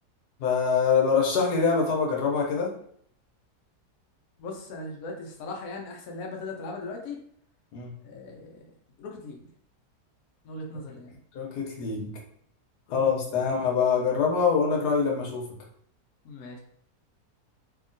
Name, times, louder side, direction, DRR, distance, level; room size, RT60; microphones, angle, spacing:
voice 1, 0.4-2.7 7.7-7.9 11.3-12.1 12.9-15.4, left 5 dB, 90° left, -1 dB, 1.3 m, -24 dB
voice 2, 4.4-7.2 8.0-8.7 9.0-9.5 10.4-11.2 12.9-13.4 16.2-16.6, left 2 dB, 70° left, 0 dB, 1.0 m, -39 dB
2.8 x 2.7 x 2.5 m, 0.64 s
omnidirectional pair, 1.7 m